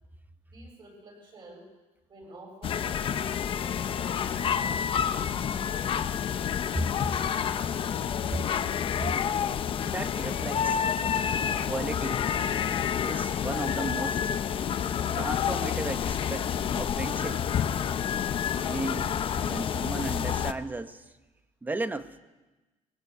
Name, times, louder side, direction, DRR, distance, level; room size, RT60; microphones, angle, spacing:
voice 1, 0.5-1.7 2.1-5.7, right 1 dB, 35° right, 2 dB, 7.3 m, -49 dB
sound 1, 2.6-20.5, left 8 dB, 40° left, 0.8 m, -29 dB
voice 2, 9.8-10.8 11.7-12.3 13.0-14.3 15.1-17.4 18.7-19.1 19.4-21.0 21.6-22.2, right 2 dB, 15° right, 10 dB, 1.0 m, -35 dB
21.0 x 18.0 x 8.2 m, 1.2 s
cardioid pair, 150°, 14 cm